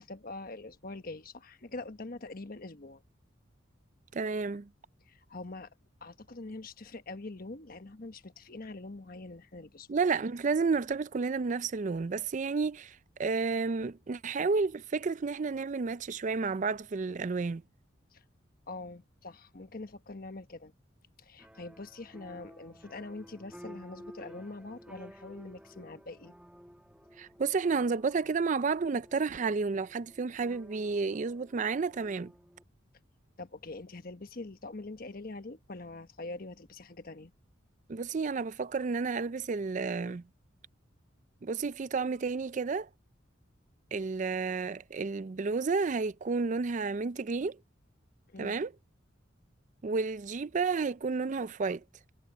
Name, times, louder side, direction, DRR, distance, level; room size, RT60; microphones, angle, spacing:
voice 1, 0.0-3.0 5.1-5.7 6.0-9.9 18.1-18.2 18.7-20.7 21.2-26.3 33.4-37.3 48.3-48.6, left 2 dB, 50° left, 1.2 m, -44 dB
voice 2, 4.1-4.7 9.9-17.6 27.2-32.3 37.9-40.2 41.4-42.9 43.9-47.6 48.4-48.7 49.8-51.8, right 4 dB, 40° right, 0.4 m, -31 dB
sound 1, 21.4-32.6, equal, 5° right, 1.2 m, -54 dB
head